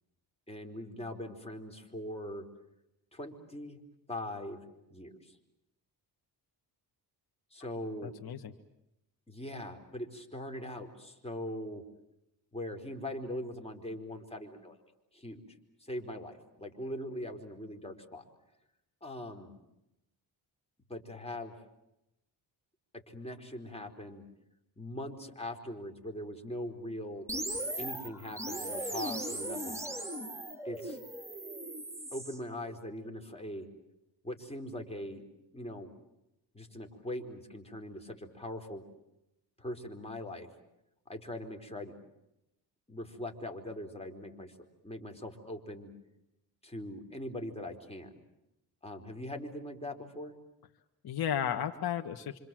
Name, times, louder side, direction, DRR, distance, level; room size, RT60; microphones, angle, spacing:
voice 1, 0.5-2.5 3.1-3.8 4.1-4.6 4.9-5.4 7.5-8.1 9.3-11.8 12.5-14.8 15.1-15.4 15.8-18.2 19.0-19.5 20.9-21.6 22.9-24.2 24.8-27.3 27.8-29.8 30.6-31.0 32.1-33.7 34.2-35.3 35.5-35.9 36.5-38.9 39.6-40.5 41.1-42.0 42.9-44.5 44.8-45.9 46.6-48.1 48.8-50.3, left 1 dB, 15° left, 4 dB, 4.3 m, -41 dB
voice 2, 8.0-8.5 51.0-52.4, left 9 dB, 60° left, 5 dB, 1.7 m, -34 dB
sound 1, 27.3-32.4, right 1 dB, 5° right, 3.5 m, -38 dB
26.5 x 26.5 x 7.7 m, 0.87 s
cardioid pair, 95°, 41 cm